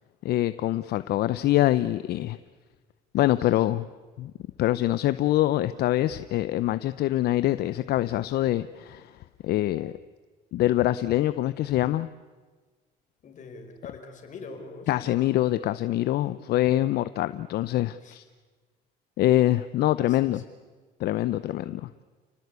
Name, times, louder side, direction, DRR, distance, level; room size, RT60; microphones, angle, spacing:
voice 1, 0.2-2.4 3.1-3.9 4.2-4.3 4.6-9.9 10.5-12.1 14.9-18.2 19.2-20.4 21.0-21.9, left 14 dB, 70° left, 14 dB, 0.7 m, -24 dB
voice 2, 13.2-14.9 16.2-16.4 18.0-18.2 20.0-20.4, left 4 dB, 50° left, 4 dB, 5.2 m, -43 dB
29.5 x 19.0 x 8.3 m, 1.4 s
cardioid pair, 110°, 17 cm